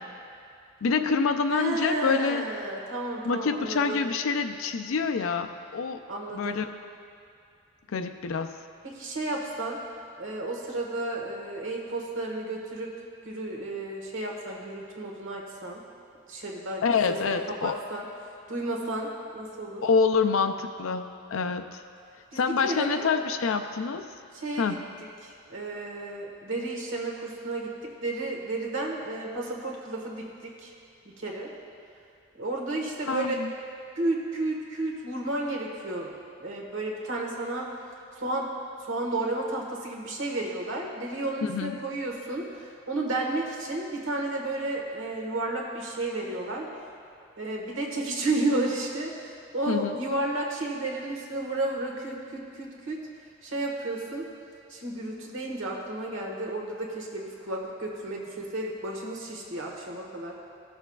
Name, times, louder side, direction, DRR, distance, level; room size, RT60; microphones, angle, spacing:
voice 1, 0.8-2.4 3.3-6.0 6.3-6.7 7.9-8.5 16.8-17.8 19.8-21.0 21.3-21.8 22.3-24.1 24.6-24.8 33.1-33.5 41.4-41.8 49.7-50.0, left 5 dB, 75° left, 6 dB, 0.4 m, -26 dB
voice 2, 1.5-4.0 6.1-6.6 8.8-9.8 10.2-12.9 13.2-15.8 16.3-16.8 17.1-18.1 18.5-19.8 22.3-23.1 24.3-24.7 25.0-30.7 31.0-31.5 32.3-33.4 33.9-36.1 36.4-37.7 38.2-38.5 38.8-46.7 47.4-53.0 53.4-54.3 54.7-60.3, right 2 dB, 65° right, -1 dB, 1.4 m, -32 dB
16.5 x 6.8 x 2.4 m, 2.5 s
head